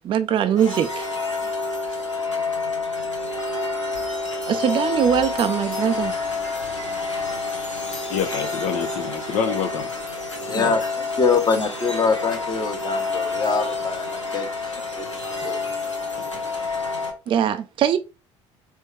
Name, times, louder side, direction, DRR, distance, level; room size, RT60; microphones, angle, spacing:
voice 1, 0.0-1.1 4.5-6.1 17.3-18.0, right 9 dB, 35° right, 0.4 m, -21 dB
sound 1, 0.6-17.1, left 3 dB, 90° left, 0.9 m, -28 dB
voice 2, 8.1-9.9 10.5-10.8 15.6-15.9 16.2-16.3, left 7 dB, 50° left, 0.6 m, -28 dB
voice 3, 10.4-14.5 15.4-15.6, left 5 dB, 25° left, 1.0 m, -24 dB
4.4 x 3.2 x 3.2 m
figure-of-eight pair, 55°, 15 cm